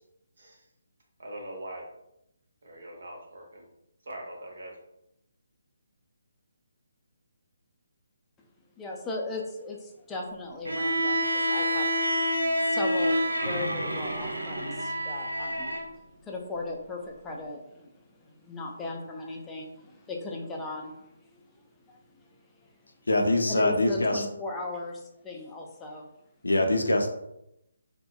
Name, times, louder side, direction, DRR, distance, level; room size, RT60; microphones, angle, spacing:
voice 1, 1.2-1.8 2.6-3.6 4.1-4.7, right 1 dB, 65° right, -1 dB, 0.8 m, -41 dB
voice 2, 8.8-15.7 16.2-17.9 18.2-21.1 21.9-22.0 23.5-26.0, left 2 dB, 10° left, -1 dB, 0.3 m, -37 dB
Bowed string instrument, 10.6-15.9, equal, 80° right, 0.3 m, -28 dB
voice 3, 23.1-24.3 26.4-27.1, left 1 dB, 80° left, 3 dB, 0.4 m, -24 dB
2.6 x 2.1 x 2.2 m, 0.82 s
figure-of-eight pair, 145°, 0 cm